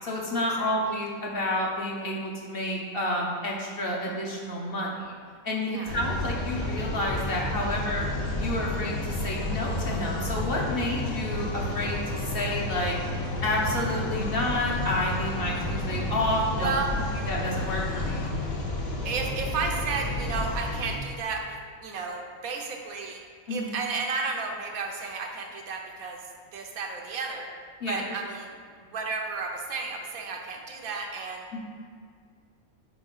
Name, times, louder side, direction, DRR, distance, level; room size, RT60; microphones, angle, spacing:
voice 1, 0.0-5.1 5.4-8.1 8.4-12.9 13.4-16.7 17.3-18.3 23.5-23.7 27.8-28.0 31.5-31.6, left 1 dB, 50° left, -3 dB, 1.0 m, -30 dB
sound 1, 5.9-21.0, left 1 dB, 80° left, 1.3 m, -31 dB
voice 2, 16.6-17.0 19.0-23.2 23.5-26.2 26.5-27.5 27.9-28.6 28.9-31.5, right 4 dB, 85° right, 2 dB, 1.2 m, -32 dB
4.5 x 4.4 x 5.5 m, 2.1 s
omnidirectional pair, 1.4 m